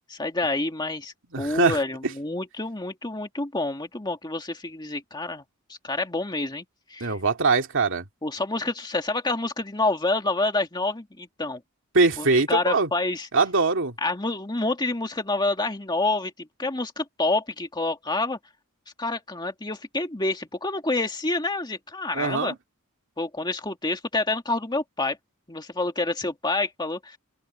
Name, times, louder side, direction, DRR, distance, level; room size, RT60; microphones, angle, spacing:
voice 1, 0.1-5.4 5.7-6.6 6.9-7.1 8.2-11.6 12.2-13.3 14.0-18.4 19.0-22.5 23.2-25.2 25.5-27.2, left 2 dB, 20° left, 2.1 m, -28 dB
voice 2, 1.3-1.8 7.0-8.1 11.9-12.9 13.3-13.9 22.1-22.6, right 3 dB, 60° right, 2.6 m, -22 dB
open air
head